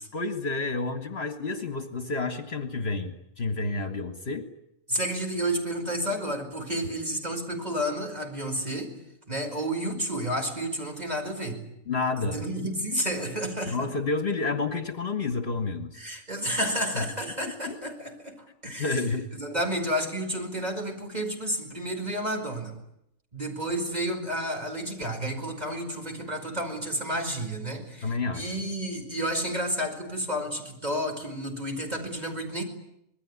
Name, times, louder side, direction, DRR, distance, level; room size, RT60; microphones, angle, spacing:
voice 1, 0.1-4.5 11.9-12.4 13.7-16.0 17.0-17.1 17.7-17.8 18.8-19.3 28.0-28.4, left 3 dB, 50° left, 7 dB, 2.2 m, -30 dB
voice 2, 4.9-9.0 9.3-11.6 12.2-13.9 15.9-18.9 19.3-22.8 23.3-32.6, equal, 30° right, 3 dB, 5.2 m, -31 dB
26.0 x 21.0 x 9.8 m, 0.81 s
omnidirectional pair, 1.4 m